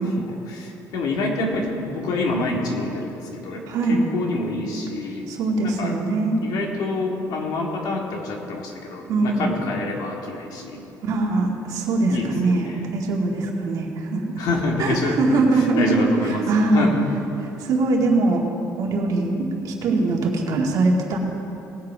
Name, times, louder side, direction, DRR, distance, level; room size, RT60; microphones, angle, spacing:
voice 1, 0.0-5.3 5.6-5.9 6.4-10.8 12.1-12.9 14.4-17.1, left 2 dB, 70° left, 0 dB, 2.1 m, -27 dB
voice 2, 3.7-4.0 5.3-6.4 9.1-9.5 11.0-14.4 14.8-16.1 16.5-16.9 17.6-18.5 18.8-21.2, right 3 dB, 65° right, 0 dB, 2.0 m, -22 dB
19.5 x 7.9 x 4.9 m, 2.9 s
cardioid pair, 155°, 7 cm